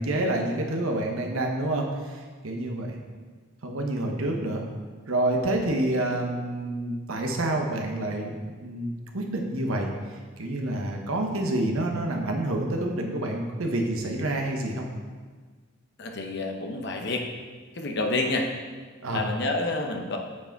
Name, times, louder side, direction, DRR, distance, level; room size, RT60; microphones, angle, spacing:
voice 1, 0.0-3.0 3.6-4.6 5.1-14.9 19.0-19.2, right 1 dB, 80° right, 2 dB, 1.0 m, -28 dB
voice 2, 16.0-17.2 17.7-18.5 19.1-20.2, left 2 dB, 50° left, 3 dB, 0.8 m, -28 dB
8.5 x 4.8 x 4.6 m, 1.5 s
head